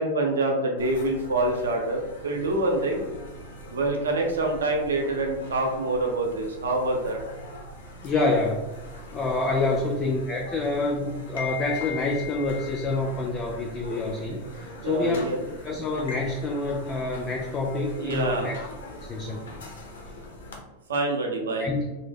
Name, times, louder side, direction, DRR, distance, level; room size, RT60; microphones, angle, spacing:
voice 1, 0.0-3.0 3.7-7.2 9.6-9.7 14.8-15.4 18.0-18.5 20.9-21.7, right 2 dB, 90° right, 1 dB, 0.6 m, -26 dB
sound 1, 0.8-20.6, left 2 dB, 80° left, 0.5 m, -41 dB
voice 2, 8.0-8.6 9.1-15.3 15.6-18.6 18.9-19.4 21.6-21.9, left 2 dB, 30° left, 0 dB, 0.4 m, -27 dB
2.1 x 2.0 x 3.3 m, 1.0 s
hypercardioid pair, 110°, 0 cm